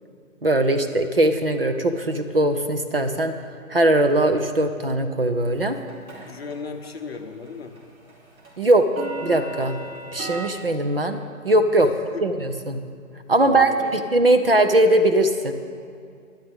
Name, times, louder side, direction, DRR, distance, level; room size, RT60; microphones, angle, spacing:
voice 1, 0.4-3.3 3.7-5.8 8.6-8.9 9.2-9.8 10.1-11.2 11.4-11.9 12.2-12.8 13.3-15.5, right 1 dB, 45° right, 7 dB, 0.6 m, -20 dB
sound 1, 5.6-6.6 6.8-7.2 7.5-10.5, right 2 dB, 75° right, 2.9 m, -36 dB
voice 2, 6.2-7.8 11.8-12.2 13.4-13.9, left 4 dB, 45° left, 5 dB, 1.0 m, -36 dB
18.0 x 11.0 x 3.6 m, 2.3 s
hypercardioid pair, 175°, 43 cm